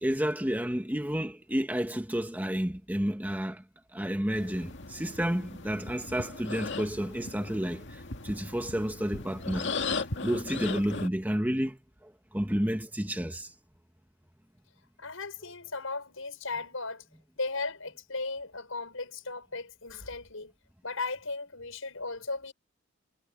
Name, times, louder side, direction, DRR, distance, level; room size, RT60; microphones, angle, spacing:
voice 1, 0.0-3.6 3.9-9.7 10.2-13.5, equal, 10° right, 1.3 m, -31 dB
sound 1, 4.3-11.1, left 4 dB, 60° left, 2.2 m, -37 dB
voice 2, 15.0-17.0 17.4-20.5 20.8-22.5, left 3 dB, 75° left, 6.1 m, -36 dB
head